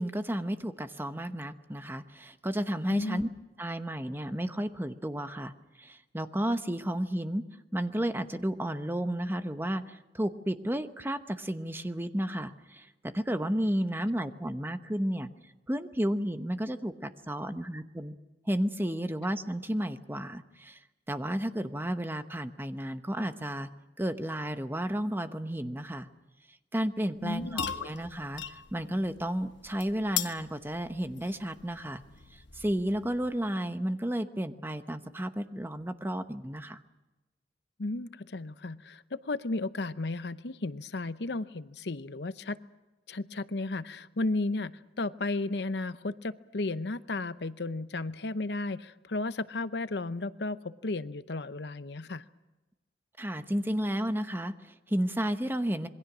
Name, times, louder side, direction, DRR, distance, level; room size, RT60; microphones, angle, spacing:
voice 1, 0.0-3.3 3.6-5.5 5.8-7.4 7.7-15.3 15.7-18.1 18.5-20.8 21.1-23.7 24.0-26.1 26.7-32.0 32.3-36.8 53.2-55.9, equal, 10° right, 9 dB, 1.0 m, -32 dB
voice 2, 2.9-3.2 27.2-27.9 37.8-42.6 43.1-52.2, left 2 dB, 65° left, 14 dB, 0.8 m, -34 dB
sound 1, 27.2-33.6, left 8 dB, 85° left, 1.2 m, -40 dB
27.0 x 22.0 x 6.2 m, 1.1 s
head